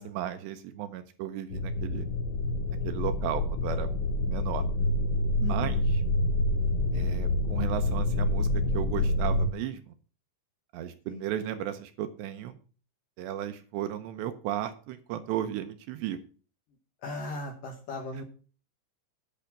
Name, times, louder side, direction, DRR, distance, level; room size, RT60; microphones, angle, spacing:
voice 1, 0.0-2.1 2.8-3.9 4.3-4.6 5.5-6.0 6.9-9.9 10.7-12.6 13.2-16.2, right 11 dB, 80° right, 8 dB, 2.7 m, -35 dB
sound 1, 1.5-9.5, left 1 dB, 90° left, 2.0 m, -27 dB
voice 2, 5.4-5.8 11.1-11.2 17.0-18.2, left 2 dB, 70° left, 3 dB, 2.1 m, -37 dB
10.5 x 5.7 x 7.2 m, 0.38 s
omnidirectional pair, 5.5 m